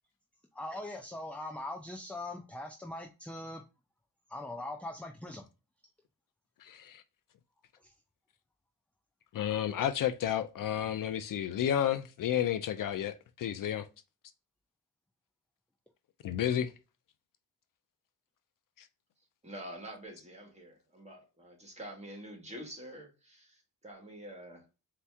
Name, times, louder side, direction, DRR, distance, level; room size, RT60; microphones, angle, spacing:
voice 1, 0.5-3.6 4.3-5.5 7.8-7.9, left 1 dB, 5° left, 0.5 m, -41 dB
voice 2, 6.6-7.0 9.3-13.9 16.2-16.7 18.8-18.9, left 10 dB, 60° left, 0.5 m, -31 dB
voice 3, 19.4-24.6, right 1 dB, 20° right, 1.8 m, -47 dB
4.2 x 2.9 x 3.4 m
cardioid pair, 115°, 37 cm